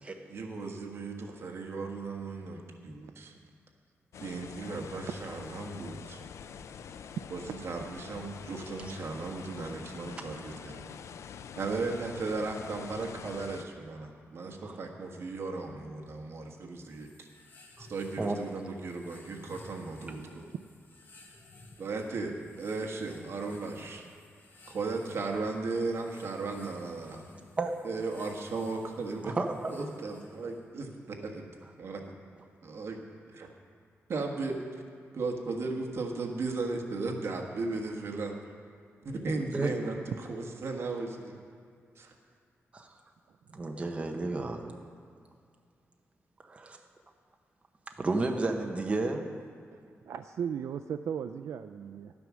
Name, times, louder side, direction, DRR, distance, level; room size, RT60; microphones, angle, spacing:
voice 1, 0.3-3.3 4.2-6.2 7.3-10.9 11.6-17.3 17.8-20.4 21.8-24.0 24.7-27.2 27.8-29.4 29.7-31.5 31.8-32.0 32.6-33.0 33.3-33.5 34.1-34.6 35.1-38.4 39.0-40.0 40.3-41.4 42.0-42.1, right 3 dB, 60° right, 2 dB, 1.5 m, -36 dB
sound 1, 4.1-13.6, left 7 dB, 75° left, 0.4 m, -46 dB
sound 2, 16.8-30.7, left 2 dB, 40° left, 1.3 m, -56 dB
voice 2, 29.2-29.5 39.5-39.7 42.7-42.9 43.5-44.7 46.4-46.8 48.0-49.3, right 3 dB, 25° right, 3 dB, 0.8 m, -32 dB
voice 3, 50.1-52.1, right 8 dB, 85° right, 9 dB, 0.3 m, -36 dB
11.5 x 9.5 x 6.2 m, 2.3 s
wide cardioid pair, 150°, 5 cm